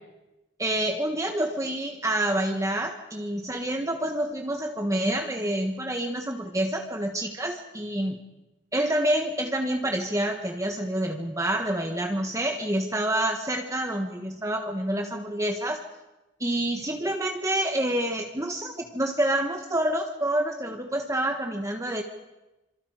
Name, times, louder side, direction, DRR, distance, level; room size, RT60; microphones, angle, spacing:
voice 1, 0.6-8.2 8.7-15.8 16.4-22.0, right 1 dB, 15° right, 3 dB, 1.4 m, -27 dB
26.5 x 25.5 x 5.0 m, 1.0 s
head